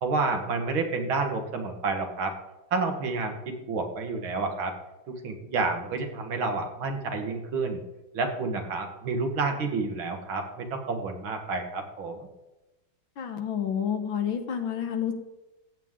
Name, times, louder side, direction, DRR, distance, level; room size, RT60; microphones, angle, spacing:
voice 1, 0.0-2.3 2.7-4.7 5.1-7.8 8.1-12.2, right 3 dB, 70° right, 4 dB, 2.2 m, -29 dB
voice 2, 13.2-15.1, left 8 dB, 70° left, 7 dB, 1.9 m, -29 dB
14.5 x 9.0 x 3.7 m, 1.0 s
omnidirectional pair, 2.3 m